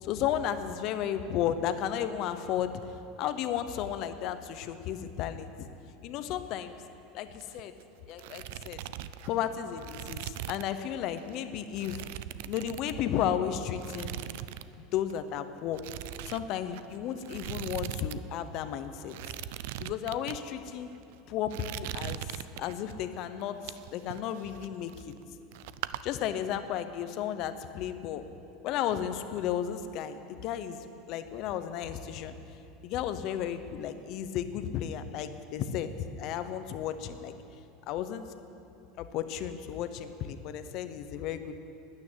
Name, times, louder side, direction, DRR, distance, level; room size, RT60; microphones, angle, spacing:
voice 1, 0.0-2.7 3.2-5.7 6.0-6.8 7.1-7.7 8.1-8.8 9.2-12.0 12.5-14.2 14.8-15.8 16.2-19.2 19.8-20.9 21.3-23.6 23.9-25.2 26.0-28.2 28.6-30.8 31.1-32.3 32.8-35.9 36.2-37.3 37.9-38.2 39.0-41.6, left 10 dB, 50° left, 10 dB, 0.9 m, -33 dB
sound 1, 7.3-7.8 8.1-10.8 11.2-11.3 11.8-13.3 13.8-14.7 14.9-15.2 15.7-18.2 18.5-18.6 19.0-20.4 20.9-21.2 21.5-22.9 23.4-25.3 25.5-26.0, right 14 dB, 75° right, 0.4 m, -40 dB
12.5 x 9.7 x 8.9 m, 2.8 s
supercardioid pair, 130°, 0 cm